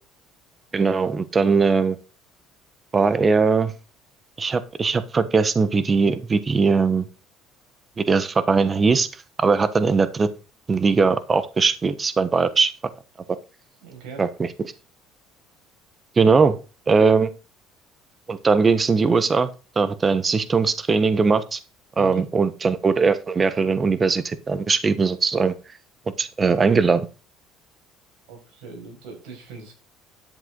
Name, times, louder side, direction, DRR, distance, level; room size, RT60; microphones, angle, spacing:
voice 1, 0.7-2.0 2.9-3.7 4.4-7.1 8.0-9.1 9.4-10.3 10.7-12.7 14.2-14.5 16.2-16.5 16.9-17.3 18.3-19.5 19.8-21.6 22.0-25.5 26.2-27.0, right 4 dB, 30° right, 13 dB, 1.2 m, -20 dB
voice 2, 13.8-14.2 22.0-22.2 28.3-29.7, right 5 dB, 75° right, 1 dB, 6.2 m, -40 dB
11.0 x 7.9 x 4.0 m, 0.32 s
supercardioid pair, 85°, 0 cm